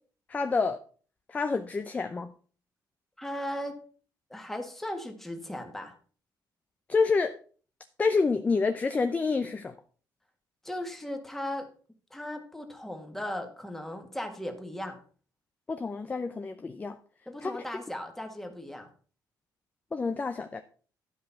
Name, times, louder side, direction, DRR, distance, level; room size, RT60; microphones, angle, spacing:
voice 1, 0.3-0.8 1.3-2.3 6.9-7.3 8.0-9.7 15.7-17.0 17.4-17.5 19.9-20.6, left 4 dB, 20° left, 8 dB, 0.6 m, -28 dB
voice 2, 3.2-3.8 4.3-5.9 10.6-11.7 12.1-15.0 17.2-18.9, left 1 dB, 5° left, 4 dB, 1.6 m, -37 dB
12.0 x 5.3 x 5.7 m, 0.41 s
cardioid pair, 150°, 8 cm